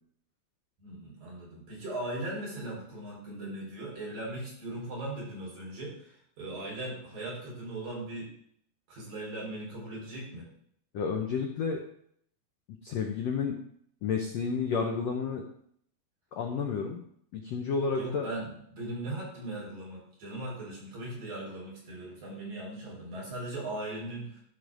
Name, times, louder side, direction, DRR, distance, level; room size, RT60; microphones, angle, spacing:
voice 1, 0.8-8.3 8.9-10.5 18.0-24.4, right 1 dB, 55° right, -4 dB, 5.4 m, -39 dB
voice 2, 10.9-11.8 12.7-13.6 14.0-15.5 16.3-17.0 17.3-18.2, left 5 dB, 80° left, 3 dB, 1.5 m, -31 dB
13.0 x 5.2 x 4.7 m, 0.67 s
omnidirectional pair, 4.2 m